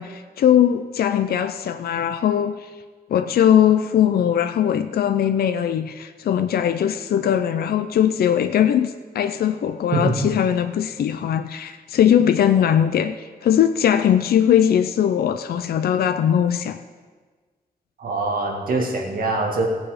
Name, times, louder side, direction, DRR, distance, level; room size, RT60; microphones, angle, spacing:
voice 1, 0.0-2.6 3.1-16.8, left 9 dB, 70° left, 9 dB, 0.5 m, -20 dB
voice 2, 9.9-10.3 18.0-19.7, right 2 dB, 60° right, 1 dB, 1.9 m, -23 dB
17.5 x 7.3 x 5.0 m, 1.4 s
wide cardioid pair, 165°, 16 cm